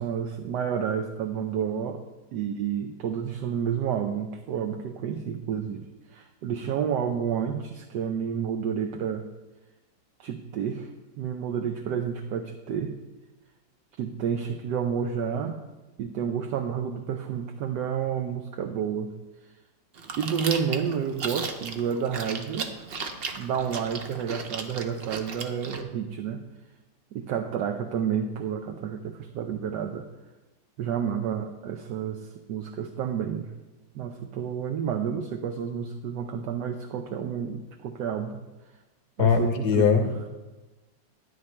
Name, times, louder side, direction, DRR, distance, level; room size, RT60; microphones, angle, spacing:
voice 1, 0.0-2.0 2.3-9.3 10.2-13.0 14.0-15.6 16.0-19.1 20.2-22.8 23.3-26.4 27.1-30.1 30.8-33.5 33.9-38.4 39.2-40.0, right 7 dB, 75° right, 5 dB, 1.2 m, -30 dB
Chewing mastication, 20.0-25.8, right 5 dB, 50° right, 0.7 m, -36 dB
voice 2, 39.2-40.3, left 6 dB, 65° left, 6 dB, 1.4 m, -22 dB
13.0 x 9.5 x 3.3 m, 1.1 s
omnidirectional pair, 1.9 m